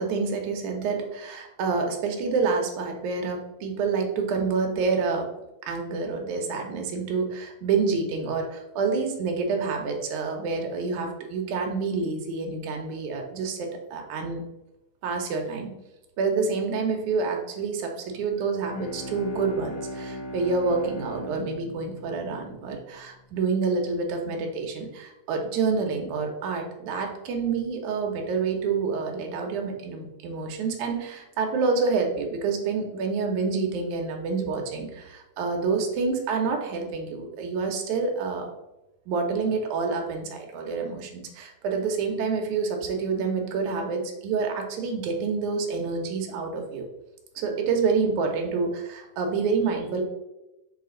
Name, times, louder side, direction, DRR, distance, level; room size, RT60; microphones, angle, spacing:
voice 1, 0.0-5.3 5.6-14.4 15.0-15.7 16.2-38.5 39.1-46.9 47.4-50.0, right 4 dB, 70° right, 2 dB, 2.3 m, -28 dB
Bowed string instrument, 18.6-23.2, equal, 70° left, 2.2 m, -38 dB
6.6 x 4.3 x 3.8 m, 0.95 s
omnidirectional pair, 3.7 m